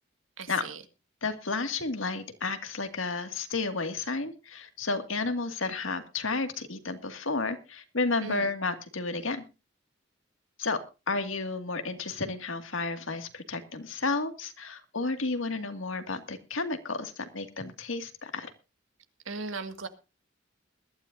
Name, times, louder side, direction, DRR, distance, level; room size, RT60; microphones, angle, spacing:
voice 1, 0.4-0.8 8.2-8.5 19.3-19.9, right 3 dB, 90° right, 8 dB, 1.9 m, -37 dB
voice 2, 1.2-9.4 10.6-10.8 11.1-18.5, left 3 dB, 90° left, 7 dB, 2.1 m, -32 dB
21.5 x 12.5 x 2.6 m, 0.30 s
head